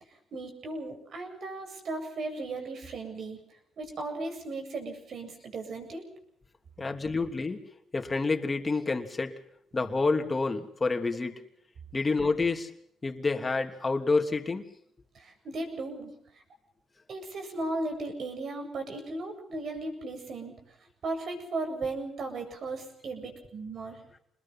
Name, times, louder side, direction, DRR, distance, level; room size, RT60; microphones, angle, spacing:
voice 1, 0.3-3.4 3.8-6.1 6.8-7.1 15.1-16.1 17.1-20.5 21.0-24.0, right 2 dB, 60° right, 5 dB, 7.9 m, -36 dB
voice 2, 6.8-7.6 7.9-9.3 9.7-11.3 11.9-12.7 13.0-14.7, left 3 dB, 25° left, 5 dB, 3.0 m, -28 dB
27.5 x 21.0 x 5.8 m, 0.70 s
cardioid pair, 90°, 0 cm